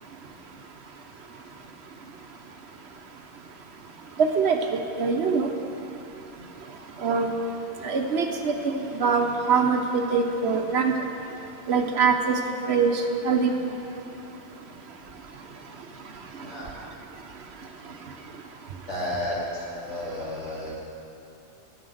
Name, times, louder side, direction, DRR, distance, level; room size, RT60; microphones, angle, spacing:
voice 1, 4.2-4.6 5.0-5.5 7.0-7.3 7.8-10.9 11.7-12.4 12.7-13.5, right 5 dB, 65° right, 4 dB, 1.1 m, -23 dB
voice 2, 18.9-20.8, left 1 dB, 80° left, -6 dB, 2.6 m, -32 dB
9.4 x 7.1 x 7.8 m, 2.9 s
omnidirectional pair, 1.2 m